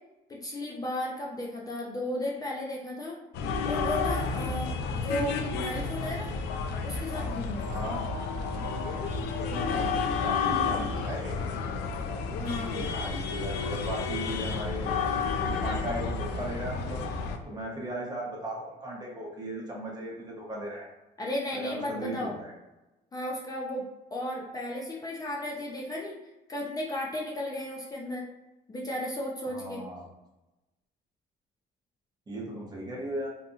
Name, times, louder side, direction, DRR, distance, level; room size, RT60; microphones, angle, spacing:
voice 1, 0.3-3.2 3.6-6.3 6.8-7.8 12.4-12.8 21.2-22.3 23.1-26.1 26.5-28.3 28.7-29.8, left 1 dB, 20° left, -3 dB, 0.5 m, -34 dB
sound 1, 3.3-17.4, left 5 dB, 80° left, 0.4 m, -31 dB
voice 2, 7.7-8.0 9.4-11.5 12.7-15.0 15.4-17.0 17.4-20.9 21.5-22.5 29.5-30.0 32.3-33.3, right 1 dB, 25° right, -3 dB, 0.9 m, -37 dB
2.7 x 2.5 x 2.4 m, 1.0 s
cardioid pair, 110°, 17 cm